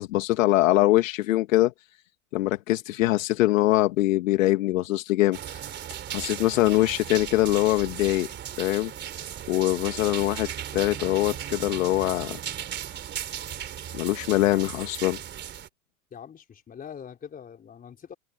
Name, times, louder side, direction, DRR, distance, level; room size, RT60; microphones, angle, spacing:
voice 1, 0.0-1.7 2.3-5.6 6.1-8.3 8.6-8.9 9.5-12.4 13.9-15.2, left 17 dB, 60° left, 2.0 m, -23 dB
sound 1, 5.3-15.7, right 10 dB, 25° right, 3.3 m, -36 dB
voice 2, 16.1-18.1, left 8 dB, 20° left, 4.7 m, -43 dB
hypercardioid pair, 125°, 43 cm